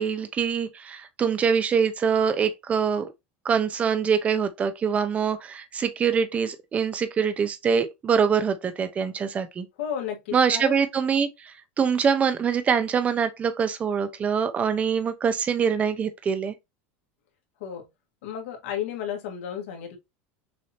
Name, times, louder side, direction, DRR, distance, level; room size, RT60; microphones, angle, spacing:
voice 1, 0.0-3.1 3.4-9.7 10.3-16.5, right 6 dB, 20° right, 0.7 m, -24 dB
voice 2, 9.8-10.8 17.6-17.9 18.2-20.0, left 8 dB, 80° left, 1.7 m, -33 dB
6.4 x 2.8 x 2.8 m
supercardioid pair, 155°, 7 cm